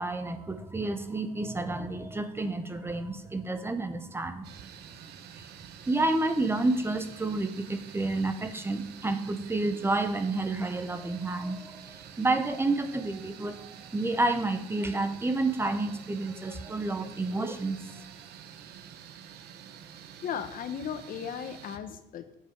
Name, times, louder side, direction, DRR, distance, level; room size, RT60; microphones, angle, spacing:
voice 1, 0.0-4.5 5.4-5.5 5.9-18.0, right 2 dB, 15° right, 9 dB, 0.8 m, -30 dB
sound 1, 4.4-21.8, right 8 dB, 75° right, 0.9 m, -48 dB
voice 2, 20.2-22.3, left 8 dB, 55° left, 10 dB, 0.8 m, -36 dB
8.6 x 7.5 x 5.0 m, 0.83 s
cardioid pair, 110°, 17 cm